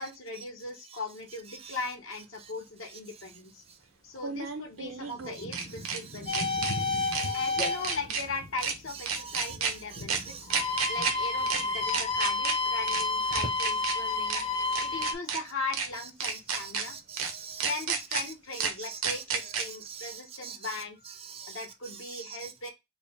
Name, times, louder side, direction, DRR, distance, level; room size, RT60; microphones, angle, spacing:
voice 1, 0.0-3.6 4.0-6.6 7.3-10.2 10.9-14.4 14.8-17.0 17.6-21.0 21.5-22.7, left 3 dB, 80° left, 1.1 m, -38 dB
sound 1, 1.7-1.8 4.2-6.0 6.3-6.7 7.1-7.3 7.6-8.2 8.6-8.7 9.1-9.7 10.1-10.2 10.5-11.1 11.5-11.6 11.9-12.5 12.9-13.0 13.3-13.9 14.3-14.4 14.7-15.4 15.7-15.9 16.2-16.8 17.2-17.3 17.6-18.2 18.6-18.7 19.0-19.6, right 6 dB, 90° right, 0.8 m, -30 dB
Thunder / Rain, 3.7-3.8 4.4-14.0 14.3-15.1 15.7-16.0 16.3-17.1 17.7-17.8, equal, 55° left, 0.8 m, -45 dB
voice 2, 6.2-7.8 9.1-9.6 9.9-10.5 10.8-10.9 16.2-17.7 18.5-20.8 21.1-22.7, right 6 dB, 30° right, 0.4 m, -44 dB
sound 2, 6.3-8.0 10.4-15.1, left 4 dB, 30° left, 0.5 m, -30 dB
4.4 x 2.0 x 3.5 m
head